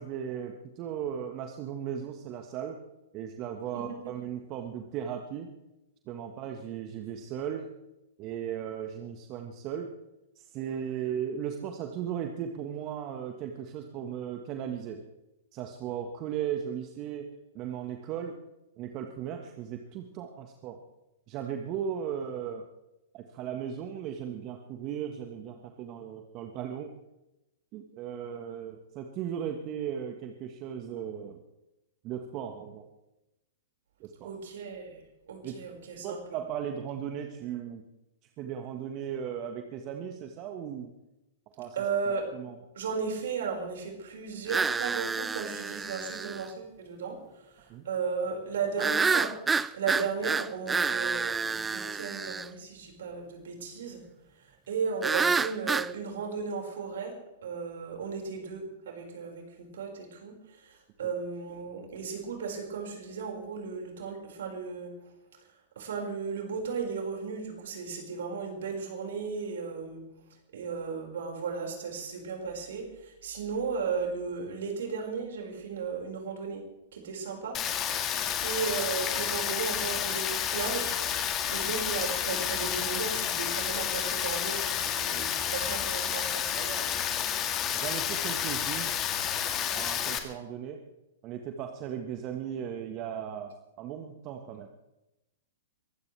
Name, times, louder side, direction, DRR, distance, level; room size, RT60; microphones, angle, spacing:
voice 1, 0.0-2.8 3.1-5.5 6.1-7.7 8.2-9.9 10.3-15.0 15.5-18.4 18.8-20.8 21.3-22.6 23.1-26.9 27.7-31.4 32.0-32.9 34.0-34.3 35.4-35.6 36.0-37.8 38.4-40.9 41.6-41.8 42.3-42.6 47.6-47.9 78.2-78.3 86.5-87.0 87.7-88.9 89.7-90.8 91.2-94.7, right 9 dB, 40° right, 4 dB, 1.6 m, -37 dB
voice 2, 34.2-35.0 35.3-36.2 41.8-42.3 42.8-47.2 47.6-49.3 49.7-54.0 54.7-57.1 57.4-60.3 60.6-64.9 65.8-70.0 70.5-76.6 76.9-77.6 78.2-81.0 81.5-86.5, right 5 dB, 65° right, 1 dB, 5.6 m, -35 dB
sound 1, 44.5-46.5 48.8-52.5 55.0-55.9, right 5 dB, 15° right, 0.5 m, -28 dB
Rain, 77.5-90.2, left 9 dB, 30° left, 2.0 m, -30 dB
23.0 x 16.0 x 3.5 m, 0.95 s
hypercardioid pair, 110°, 0 cm